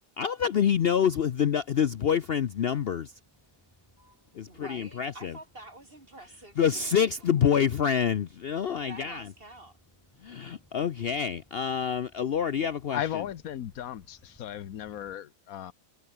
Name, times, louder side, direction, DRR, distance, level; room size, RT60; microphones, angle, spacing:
voice 1, 0.2-3.1 4.3-5.3 6.6-9.2 10.2-13.0, left 8 dB, 55° left, 0.8 m, -27 dB
Motor vehicle (road), 1.1-15.1, equal, 10° left, 6.5 m, -63 dB
voice 2, 4.5-6.9 8.8-9.8, right 2 dB, 40° right, 4.7 m, -47 dB
voice 3, 12.9-15.7, left 10 dB, 90° left, 1.3 m, -36 dB
omnidirectional pair, 1.4 m